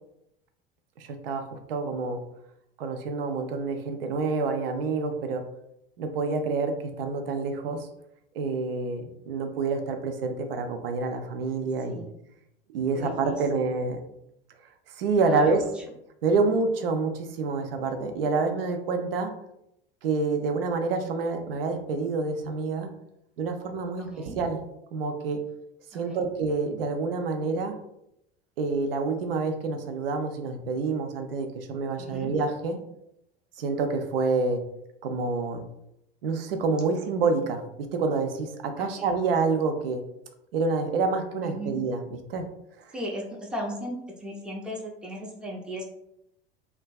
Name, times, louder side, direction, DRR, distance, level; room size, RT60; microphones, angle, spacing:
voice 1, 1.0-2.2 2.8-5.4 6.0-7.9 8.4-12.0 12.7-14.0 14.9-15.6 16.2-19.3 20.0-22.9 23.4-24.6 24.9-25.4 25.9-27.8 28.6-32.8 33.6-34.6 35.0-35.6 36.2-40.0 40.5-42.5 42.8-42.9, right 4 dB, 70° right, 6 dB, 0.4 m, -27 dB
voice 2, 12.9-13.7 15.2-15.7 24.0-24.4 25.9-26.3 32.0-32.3 38.8-39.1 41.4-41.8 42.9-45.8, equal, 5° right, -1 dB, 0.5 m, -36 dB
2.5 x 2.2 x 2.3 m, 0.80 s
figure-of-eight pair, 75°, 30 cm